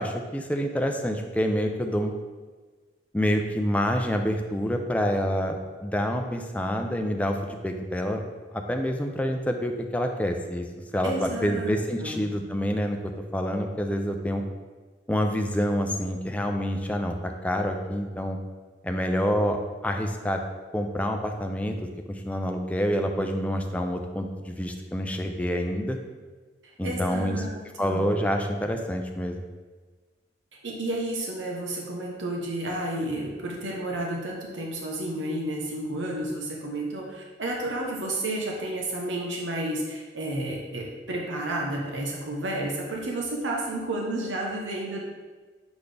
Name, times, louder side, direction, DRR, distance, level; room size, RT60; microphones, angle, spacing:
voice 1, 0.0-2.1 3.1-8.2 8.5-10.6 10.9-14.4 15.1-18.4 18.8-20.4 20.7-26.0 26.8-27.4 27.8-29.4, equal, 10° left, 4 dB, 0.4 m, -27 dB
voice 2, 11.0-12.2 26.6-28.1 30.6-45.0, right 1 dB, 85° right, -1 dB, 0.9 m, -31 dB
6.9 x 4.1 x 3.3 m, 1.4 s
head